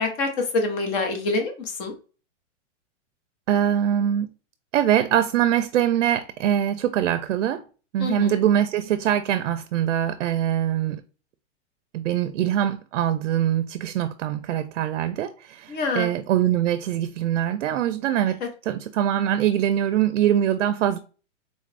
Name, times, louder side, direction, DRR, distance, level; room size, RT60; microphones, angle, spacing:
voice 1, 0.0-1.9 8.0-8.4 15.7-16.1 18.4-18.5, left 3 dB, 30° left, 1.0 m, -26 dB
voice 2, 3.5-4.3 4.7-7.6 7.9-11.0 11.9-21.0, right 10 dB, 75° right, 0.5 m, -23 dB
3.9 x 2.5 x 3.3 m
hypercardioid pair, 155°, 37 cm